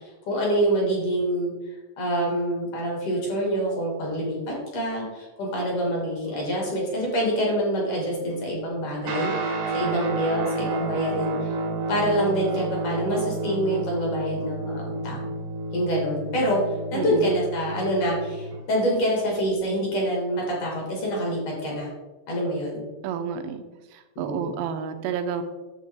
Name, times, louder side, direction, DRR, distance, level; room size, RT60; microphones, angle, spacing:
voice 1, 0.3-1.5 2.0-11.5 11.9-15.2 15.7-16.6 16.9-21.9 22.3-22.8 24.2-24.5, equal, 50° left, -2 dB, 3.4 m, -26 dB
Guitar, 9.0-18.7, right 2 dB, 65° right, 1.8 m, -30 dB
voice 2, 16.9-17.3 23.0-23.6 23.9-25.4, right 7 dB, 80° right, 8 dB, 2.8 m, -30 dB
10.5 x 7.4 x 3.7 m, 1.2 s
omnidirectional pair, 5.2 m